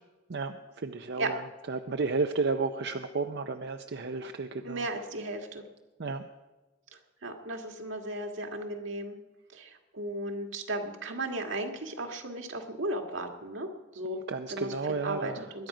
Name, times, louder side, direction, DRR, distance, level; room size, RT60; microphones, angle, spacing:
voice 1, 0.3-4.9 6.0-6.3 14.3-15.4, right 4 dB, 60° right, 7 dB, 0.6 m, -32 dB
voice 2, 4.6-5.6 7.2-9.2 9.5-13.7 13.9-14.2 14.5-14.8 15.0-15.7, right 1 dB, 80° right, 3 dB, 1.9 m, -35 dB
21.5 x 10.5 x 5.0 m, 1.2 s
head